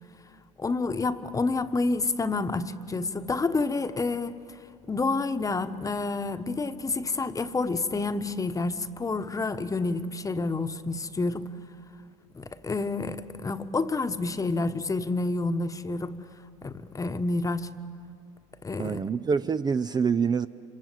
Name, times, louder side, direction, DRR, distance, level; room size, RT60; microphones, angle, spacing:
voice 1, 0.6-4.6 4.9-11.5 12.3-16.2 16.6-17.7 18.6-19.0, left 3 dB, 20° left, 9 dB, 1.3 m, -29 dB
voice 2, 18.8-20.5, right 6 dB, 25° right, 11 dB, 0.6 m, -26 dB
26.5 x 25.0 x 7.9 m, 2.4 s
hypercardioid pair, 75°, 16 cm